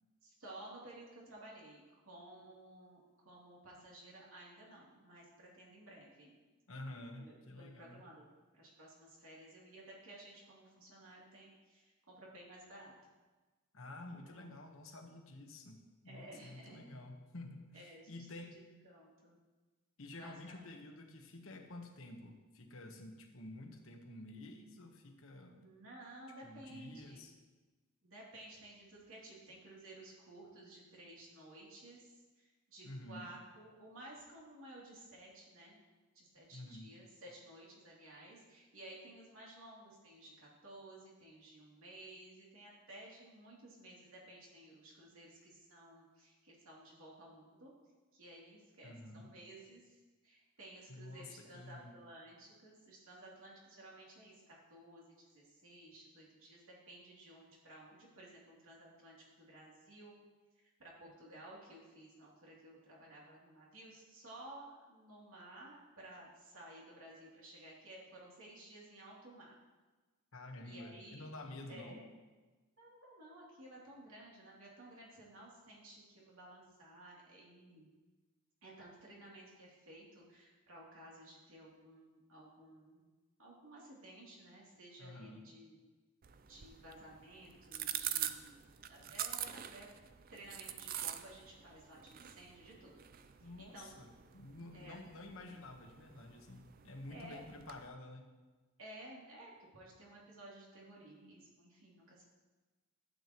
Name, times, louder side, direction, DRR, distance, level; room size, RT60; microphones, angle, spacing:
voice 1, 0.2-6.3 6.8-8.3 8.5-12.9 14.1-14.5 16.0-16.9 17.7-19.4 20.2-20.6 25.6-27.2 28.0-35.8 36.1-47.7 48.1-60.2 60.5-69.6 70.6-71.3 71.7-72.0 72.8-77.9 78.6-83.0 83.4-85.8 86.5-89.9 90.3-93.9 94.7-95.0 97.1-97.4 98.8-102.2, right 1 dB, 70° right, -4 dB, 2.8 m, -55 dB
voice 2, 6.7-8.0 13.7-18.6 20.0-25.7 26.4-27.3 32.8-33.3 36.5-36.9 48.8-49.3 50.9-52.0 70.3-72.0 85.0-85.5 93.4-98.3, left 2 dB, 65° left, 4 dB, 1.1 m, -50 dB
sound 1, 86.2-97.9, right 11 dB, 40° right, 0.4 m, -45 dB
12.5 x 8.7 x 3.0 m, 1.2 s
head